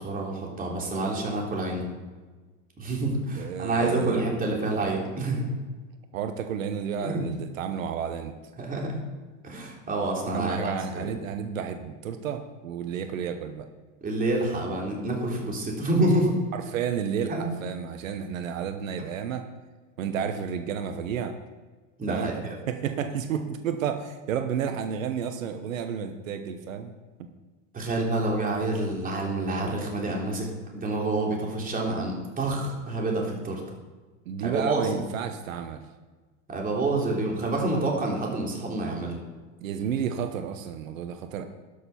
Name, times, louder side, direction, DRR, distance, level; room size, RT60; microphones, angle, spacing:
voice 1, 0.0-1.9 2.8-5.5 7.0-7.3 8.6-9.0 9.4-11.1 14.0-16.4 17.3-17.5 22.0-22.6 27.7-30.5 30.7-33.6 34.4-35.0 36.5-39.2, right 2 dB, 20° right, -1 dB, 3.3 m, -28 dB
voice 2, 3.3-4.2 6.1-8.3 10.3-13.7 16.5-19.4 20.0-21.4 22.1-22.3 22.7-26.9 34.3-35.9 39.6-41.4, right 7 dB, 90° right, 8 dB, 1.0 m, -31 dB
12.5 x 6.7 x 5.8 m, 1.3 s
hypercardioid pair, 110°, 38 cm